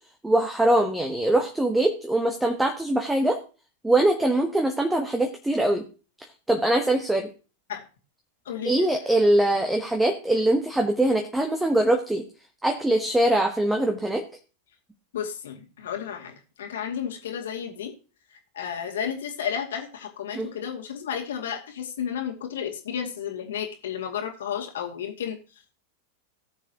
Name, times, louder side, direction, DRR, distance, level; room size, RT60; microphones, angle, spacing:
voice 1, 0.2-3.4 3.8-5.8 6.5-7.3 8.6-12.2 12.6-14.2 20.3-20.5, right 1 dB, 5° right, 4 dB, 1.4 m, -22 dB
voice 2, 15.1-17.9 18.6-25.4, left 8 dB, 60° left, 3 dB, 2.3 m, -32 dB
18.5 x 7.2 x 3.0 m, 0.34 s
figure-of-eight pair, 90°, 0 cm